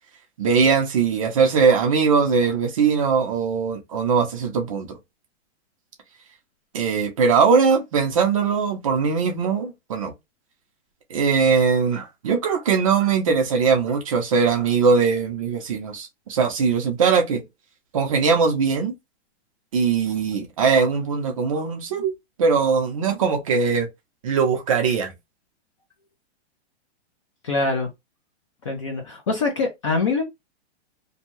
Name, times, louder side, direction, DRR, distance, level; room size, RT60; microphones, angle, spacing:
voice 1, 0.4-5.0 6.7-10.1 11.1-17.4 17.9-18.9 19.7-22.1 22.4-23.9 24.2-25.1, right 5 dB, 30° right, 0.5 m, -20 dB
voice 2, 27.4-27.9 28.6-30.2, left 3 dB, 30° left, 0.4 m, -24 dB
2.6 x 2.2 x 3.0 m
hypercardioid pair, 170°, 33 cm